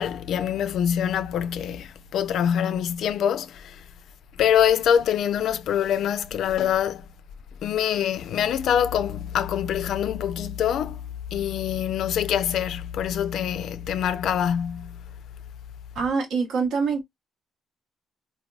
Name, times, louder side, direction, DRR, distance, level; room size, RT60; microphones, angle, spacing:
voice 1, 0.0-3.8 4.4-7.0 7.6-11.0 11.3-14.9, left 9 dB, 75° left, 0.3 m, -24 dB
voice 2, 15.9-17.0, right 5 dB, 80° right, 0.9 m, -24 dB
3.5 x 2.2 x 2.2 m
cardioid pair, 90°, 0 cm